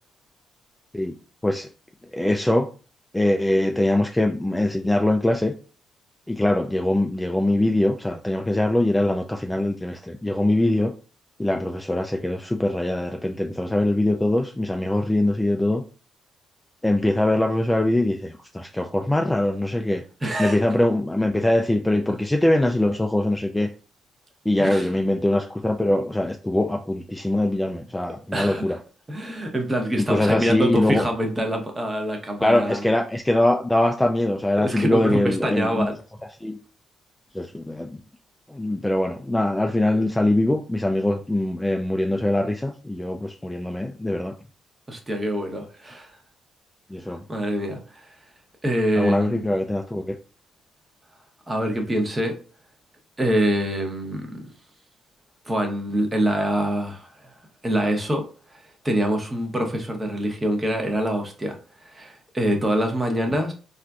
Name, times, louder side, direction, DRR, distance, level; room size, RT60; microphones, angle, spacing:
voice 1, 2.1-2.7 3.1-5.5 6.3-10.9 11.4-15.8 16.8-20.0 20.4-23.7 24.5-28.8 30.0-31.0 32.4-35.9 36.4-36.6 37.3-38.0 38.5-44.3 46.9-47.2 49.0-50.1, left 1 dB, 10° left, 3 dB, 0.3 m, -22 dB
voice 2, 20.2-20.6 24.6-24.9 28.3-28.8 29.1-32.8 34.6-35.9 44.9-46.1 47.3-48.1 48.6-49.4 51.5-52.4 53.2-54.5 55.5-57.3 57.6-58.2 58.8-61.6 61.8-63.5, right 1 dB, 20° right, 3 dB, 0.8 m, -25 dB
3.7 x 2.5 x 2.3 m, 0.38 s
cardioid pair, 90°, 0 cm